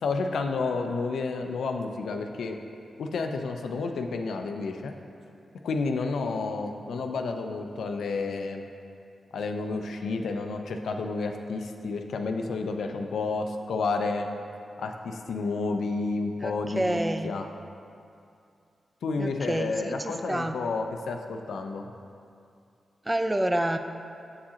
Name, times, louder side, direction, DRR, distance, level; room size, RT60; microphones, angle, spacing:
voice 1, 0.0-2.6 3.0-4.9 5.6-8.7 9.3-14.3 14.8-17.5 19.0-21.9, left 3 dB, 85° left, 4 dB, 0.4 m, -30 dB
voice 2, 16.4-17.3 19.2-20.5 23.1-23.8, right 1 dB, 20° right, 7 dB, 0.4 m, -28 dB
7.2 x 4.8 x 2.8 m, 2.5 s
cardioid pair, 50°, 0 cm